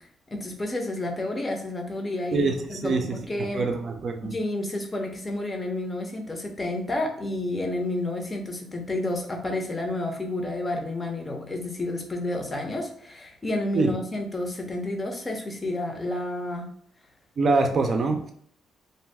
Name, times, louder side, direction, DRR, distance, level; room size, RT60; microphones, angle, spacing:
voice 1, 0.3-3.7 4.2-16.7, left 1 dB, 25° left, 2 dB, 0.7 m, -30 dB
voice 2, 2.3-3.0 3.5-4.3 13.7-13.9 17.4-18.3, right 3 dB, 50° right, 4 dB, 0.4 m, -24 dB
2.6 x 2.2 x 3.3 m, 0.63 s
cardioid pair, 90°, 0 cm